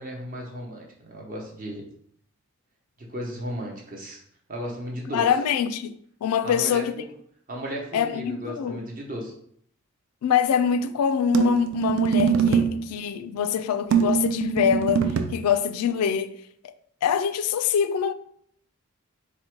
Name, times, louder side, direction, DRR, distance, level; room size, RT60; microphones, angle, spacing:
voice 1, 0.0-1.8 3.0-4.2 4.5-5.3 6.4-7.1 7.5-9.3, equal, 40° right, 0.8 m, -35 dB
voice 2, 5.1-5.9 6.2-6.9 7.9-8.8 10.2-15.1 15.3-16.3 17.0-18.1, left 8 dB, 90° left, 0.3 m, -24 dB
sound 1, 11.3-12.8 13.9-15.4, right 7 dB, 65° right, 0.4 m, -23 dB
3.9 x 2.1 x 4.5 m
head